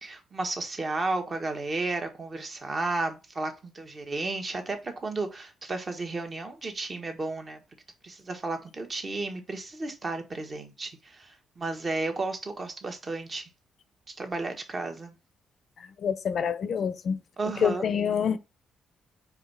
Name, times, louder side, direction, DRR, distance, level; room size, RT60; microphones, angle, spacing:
voice 1, 0.0-7.6 8.0-13.5 14.2-15.1 17.4-17.8, right 3 dB, 30° right, 1.3 m, -33 dB
voice 2, 15.8-17.2 17.6-18.4, left 7 dB, 50° left, 0.6 m, -27 dB
4.8 x 3.6 x 5.6 m
cardioid pair, 120°, 0 cm